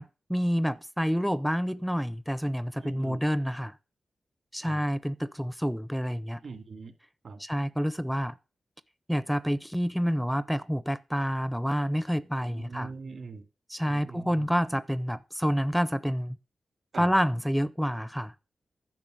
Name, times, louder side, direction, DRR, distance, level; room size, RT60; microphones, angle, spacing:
voice 1, 0.0-3.7 4.5-6.4 7.5-8.3 9.1-12.9 13.7-16.4 17.0-18.3, equal, ahead, 0.5 m, -28 dB
voice 2, 2.8-3.3 4.6-4.8 6.4-6.9 7.2-7.4 12.4-13.5 13.8-14.5 16.9-17.1, right 4 dB, 70° right, 2.3 m, -42 dB
10.5 x 5.8 x 7.7 m
cardioid pair, 70°, 0 cm